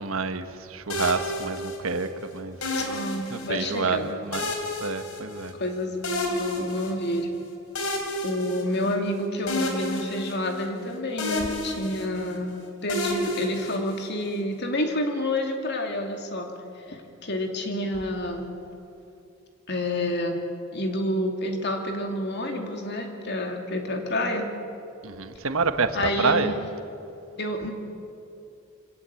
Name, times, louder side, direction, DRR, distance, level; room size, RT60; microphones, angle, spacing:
voice 1, 0.0-2.6 3.1-4.5 4.8-5.5 25.0-26.5, right 4 dB, 75° right, 9 dB, 1.3 m, -28 dB
sound 1, 0.9-2.1 2.6-3.7 4.3-5.7 6.0-7.2 7.7-9.1 9.5-10.9 11.2-12.4 12.9-14.3, left 1 dB, 75° left, 3.7 m, -31 dB
voice 2, 2.8-4.1 5.6-7.3 8.2-16.5 16.9-18.5 19.7-20.4 20.7-24.5 25.9-26.6 27.4-27.7, left 1 dB, 50° left, 4 dB, 2.6 m, -29 dB
25.0 x 17.5 x 8.4 m, 2.6 s
head